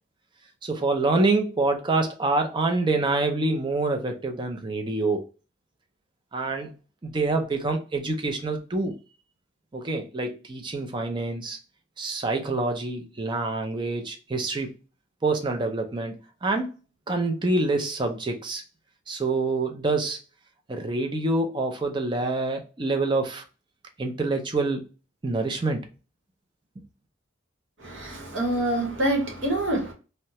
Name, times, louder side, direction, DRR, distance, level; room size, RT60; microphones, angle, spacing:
voice 1, 0.6-5.2 6.3-6.8 7.0-8.9 9.7-11.6 12.0-14.7 15.2-16.2 16.4-16.7 17.1-18.6 19.1-20.2 20.7-23.4 24.0-24.8 25.2-25.9, right 3 dB, 25° right, 0.4 m, -26 dB
voice 2, 27.8-29.9, right 1 dB, 75° right, 1.0 m, -26 dB
2.7 x 2.1 x 2.9 m
head